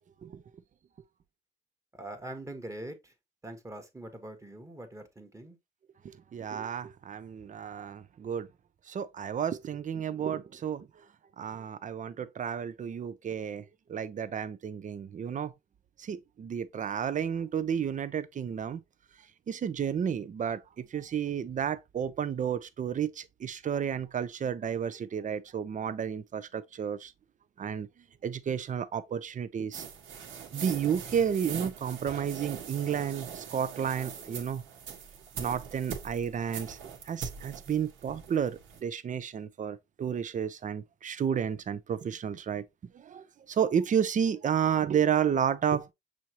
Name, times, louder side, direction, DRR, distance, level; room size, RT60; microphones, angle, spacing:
voice 1, 1.9-3.1 3.4-5.6, right 1 dB, 15° right, 1.2 m, -43 dB
voice 2, 6.0-8.5 8.9-10.9 11.4-15.5 16.0-18.8 19.5-27.1 27.6-27.9 28.2-29.8 30.5-34.6 35.4-36.8 37.1-42.6 42.9-45.9, right 8 dB, 40° right, 0.6 m, -31 dB
sound 1, 29.7-38.8, right 7 dB, 80° right, 1.3 m, -42 dB
6.3 x 2.9 x 2.9 m
cardioid pair, 90°, 20 cm